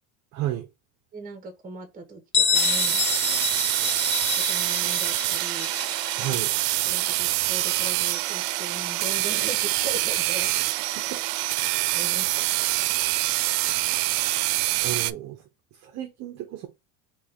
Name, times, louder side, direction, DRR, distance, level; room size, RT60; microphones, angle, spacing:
voice 1, 0.3-0.7 6.2-6.5 11.0-11.2 13.7-14.0 14.8-15.4 15.7-16.7, right 13 dB, 35° right, 0.7 m, -33 dB
voice 2, 1.1-3.1 4.3-5.7 6.2-6.4 6.8-10.8 11.9-12.6, right 3 dB, 20° right, 1.2 m, -39 dB
Bell, 2.3-7.8, left 6 dB, 25° left, 0.6 m, -28 dB
sound 1, 2.5-15.1, right 18 dB, 85° right, 0.5 m, -25 dB
4.3 x 3.1 x 3.5 m
supercardioid pair, 160°, 45 cm